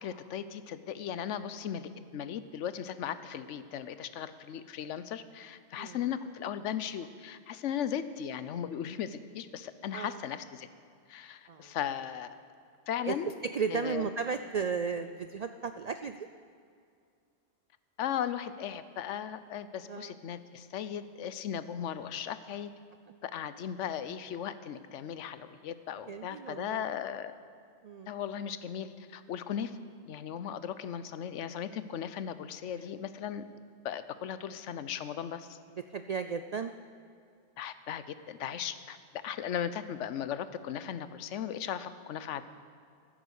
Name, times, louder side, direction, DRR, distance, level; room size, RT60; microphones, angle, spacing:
voice 1, 0.0-10.7 11.1-12.4 12.9-13.3 13.7-14.1 18.0-22.7 23.2-27.3 28.1-29.8 30.1-33.4 33.8-35.6 37.6-42.4, left 9 dB, 90° left, 13 dB, 1.0 m, -37 dB
voice 2, 13.4-16.3 19.9-20.1 26.1-26.8 27.8-28.1 32.7-32.8 35.7-36.7, right 6 dB, 75° right, 9 dB, 0.3 m, -35 dB
15.0 x 9.0 x 6.5 m, 2.3 s
omnidirectional pair, 1.2 m